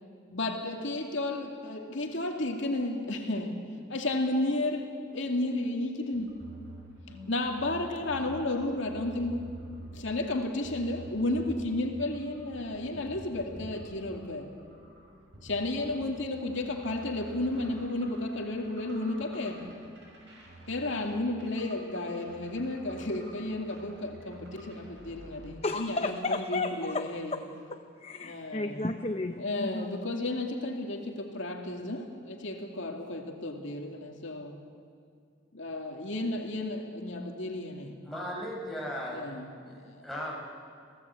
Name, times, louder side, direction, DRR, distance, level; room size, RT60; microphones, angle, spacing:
voice 1, 0.3-3.6 3.9-6.4 7.3-9.5 9.8-14.5 15.4-19.6 20.7-27.3 28.2-28.9 29.4-34.6 35.5-37.9 39.1-40.0, left 2 dB, 70° left, 2 dB, 2.4 m, -33 dB
sound 1, 6.1-25.5, right 1 dB, 60° right, 5.8 m, -48 dB
voice 2, 25.6-27.1 27.3-27.4 27.7-29.9, left 2 dB, 30° left, 7 dB, 0.8 m, -33 dB
voice 3, 38.0-39.2 39.7-40.3, equal, ahead, -5 dB, 5.9 m, -37 dB
27.5 x 17.5 x 8.4 m, 2.2 s
head